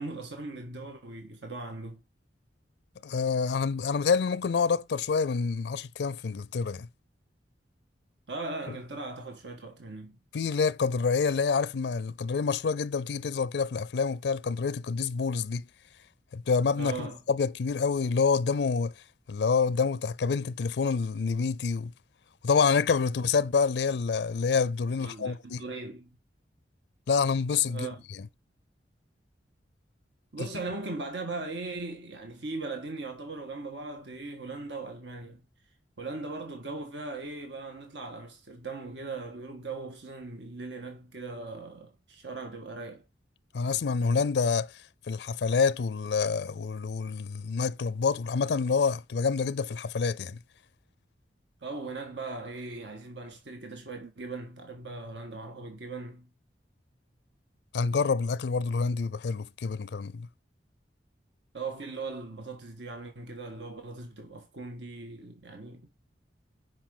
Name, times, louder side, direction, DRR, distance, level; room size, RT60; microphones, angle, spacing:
voice 1, 0.0-2.0 8.3-10.2 16.8-17.2 25.0-26.2 27.6-28.0 30.3-35.4 36.0-43.0 51.6-56.3 61.5-65.9, right 3 dB, 80° right, 1.6 m, -39 dB
voice 2, 3.0-6.9 10.3-15.6 16.3-18.9 19.3-21.9 22.4-25.6 27.1-27.9 30.4-30.5 43.5-44.7 45.1-50.4 57.7-60.3, left 5 dB, 65° left, 0.4 m, -27 dB
10.5 x 4.9 x 3.8 m
head